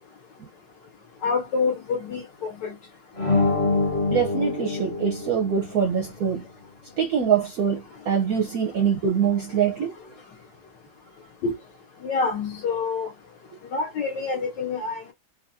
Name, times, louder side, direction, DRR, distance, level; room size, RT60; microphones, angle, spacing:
voice 1, 1.2-2.7 11.4-11.5 12.0-13.1 13.7-15.1, left 4 dB, 65° left, 1.5 m, -27 dB
sound 1, 3.2-5.9, left 3 dB, 35° left, 0.5 m, -25 dB
voice 2, 4.1-6.5 7.0-9.9, right 7 dB, 65° right, 0.9 m, -24 dB
4.0 x 2.3 x 2.7 m
omnidirectional pair, 2.1 m